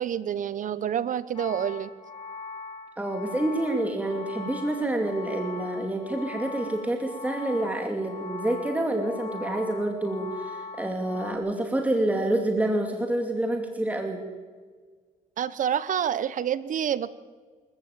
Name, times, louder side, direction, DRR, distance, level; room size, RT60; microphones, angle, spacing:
voice 1, 0.0-1.9 15.4-17.1, right 9 dB, 50° right, 16 dB, 1.0 m, -28 dB
sound 1, 1.4-11.3, left 4 dB, 30° left, 4.3 m, -40 dB
voice 2, 3.0-14.2, right 1 dB, 10° right, 3 dB, 2.7 m, -28 dB
25.5 x 14.5 x 8.9 m, 1.5 s
cardioid pair, 110°, 17 cm